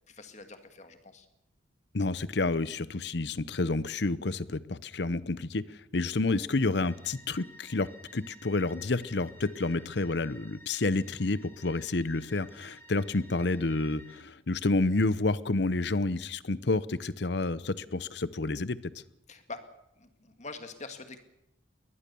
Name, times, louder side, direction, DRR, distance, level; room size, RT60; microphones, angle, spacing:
voice 1, 0.1-1.3 19.3-19.7 20.0-21.2, left 3 dB, 35° left, 8 dB, 2.0 m, -45 dB
voice 2, 1.9-18.8, left 2 dB, 60° left, 17 dB, 0.8 m, -29 dB
sound 1, 6.8-14.2, equal, 10° left, 3.9 m, -54 dB
22.0 x 19.5 x 7.0 m, 0.83 s
head